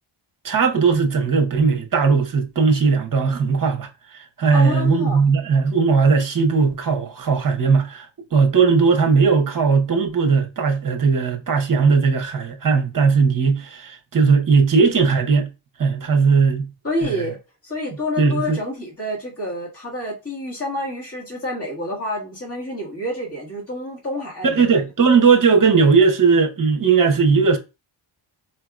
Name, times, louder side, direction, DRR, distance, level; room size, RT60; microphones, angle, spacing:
voice 1, 0.4-15.5 15.8-16.7 17.0-17.3 18.2-18.6 24.4-27.6, right 5 dB, 40° right, 0.9 m, -18 dB
voice 2, 4.5-5.2 16.8-17.4 17.6-24.8, left 1 dB, 30° left, 1.9 m, -28 dB
4.5 x 2.8 x 2.4 m
wide cardioid pair, 110°, 49 cm